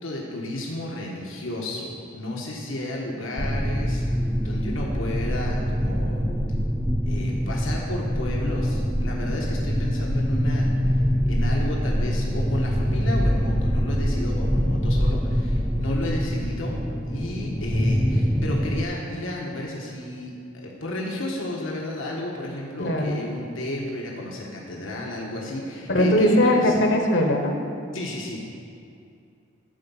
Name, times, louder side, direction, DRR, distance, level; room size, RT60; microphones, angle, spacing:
voice 1, 0.0-4.0 4.4-6.3 7.1-11.0 11.3-16.8 17.1-26.7 27.9-28.4, left 1 dB, 85° left, -2 dB, 1.3 m, -32 dB
sound 1, 3.4-18.8, equal, ahead, 0.5 m, -24 dB
voice 2, 22.8-23.2 25.9-27.6, left 1 dB, 65° left, 3 dB, 1.1 m, -20 dB
11.5 x 4.6 x 7.0 m, 2.5 s
head